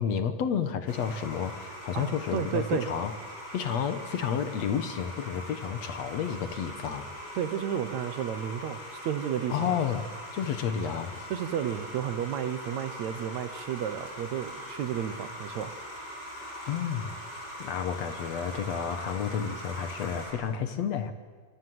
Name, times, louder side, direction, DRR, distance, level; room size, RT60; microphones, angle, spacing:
voice 1, 0.0-3.1 3.5-7.1 9.5-11.3 16.7-17.1 17.6-21.1, left 7 dB, 60° left, 10 dB, 2.3 m, -31 dB
sound 1, 0.9-20.3, equal, 30° left, 8.8 m, -42 dB
voice 2, 1.9-2.9 7.3-9.8 11.3-15.7, right 9 dB, 70° right, 12 dB, 2.1 m, -32 dB
26.0 x 25.5 x 7.9 m, 1.5 s
omnidirectional pair, 3.7 m